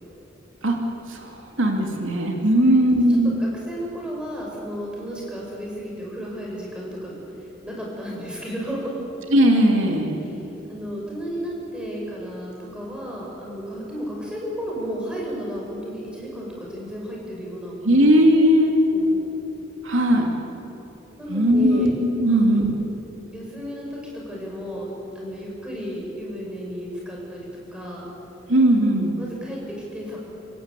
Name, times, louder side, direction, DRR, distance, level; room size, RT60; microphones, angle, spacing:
voice 1, 1.6-3.4 9.3-10.2 17.8-18.7 19.8-20.3 21.3-22.7 28.5-29.1, equal, 85° right, 2 dB, 2.8 m, -18 dB
voice 2, 2.6-9.0 10.2-10.4 10.7-17.8 18.9-19.2 21.2-21.9 22.3-22.6 23.3-28.0 28.7-30.2, equal, 5° right, -3 dB, 6.3 m, -33 dB
27.5 x 16.5 x 8.4 m, 2.9 s
head